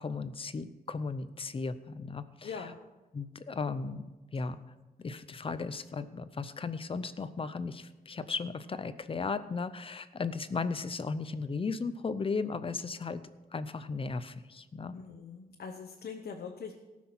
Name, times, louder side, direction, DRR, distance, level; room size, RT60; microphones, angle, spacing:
voice 1, 0.0-2.5 3.1-4.0 4.3-4.6 5.0-13.2 13.5-14.9, left 4 dB, 35° left, 13 dB, 0.6 m, -36 dB
voice 2, 2.4-2.8 14.9-16.7, left 6 dB, 90° left, 3 dB, 1.0 m, -42 dB
17.5 x 6.0 x 5.9 m, 1.2 s
wide cardioid pair, 150°, 16 cm